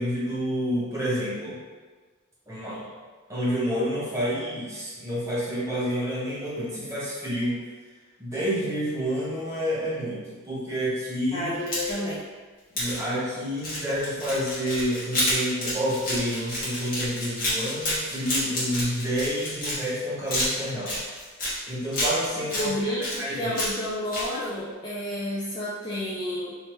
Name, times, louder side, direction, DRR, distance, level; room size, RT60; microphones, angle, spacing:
voice 1, 0.0-1.6 2.5-2.8 3.3-7.6 8.2-11.5 12.7-21.0 21.7-23.6, equal, 15° right, -9 dB, 0.9 m, -29 dB
voice 2, 11.3-12.2 22.5-26.6, left 1 dB, 20° left, -8 dB, 0.4 m, -30 dB
sound 1, 11.5-12.1 12.8-13.0 13.6-20.0 20.3-21.6 21.9-22.7 23.0-23.8 24.1-24.3, left 1 dB, 40° left, 1.2 m, -29 dB
3.2 x 2.8 x 3.0 m, 1.4 s
head